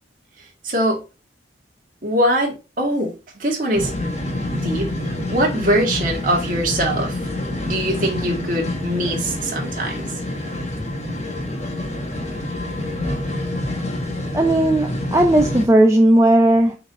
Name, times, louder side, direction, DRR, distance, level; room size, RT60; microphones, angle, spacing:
voice 1, 0.6-1.0 2.0-3.1 3.4-3.9 4.5-4.9 5.3-7.2 7.6-10.1, right 1 dB, 45° right, 1.9 m, -22 dB
sound 1, 3.7-15.7, left 1 dB, 35° left, 1.4 m, -27 dB
voice 2, 14.3-16.8, right 1 dB, 15° right, 0.5 m, -15 dB
6.0 x 3.8 x 4.2 m
head